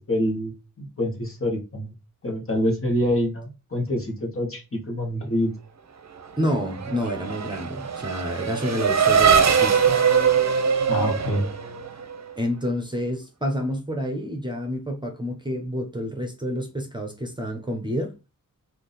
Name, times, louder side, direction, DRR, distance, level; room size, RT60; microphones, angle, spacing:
voice 1, 0.1-1.9 2.2-5.5 10.9-11.4, equal, 40° left, 1.5 m, -26 dB
Race car auto racing / Accelerating revving vroom, 6.2-12.3, right 7 dB, 55° right, 0.7 m, -22 dB
voice 2, 6.4-10.0 12.4-18.1, equal, 15° right, 1.0 m, -29 dB
3.5 x 2.8 x 4.0 m
wide cardioid pair, 105°, 33 cm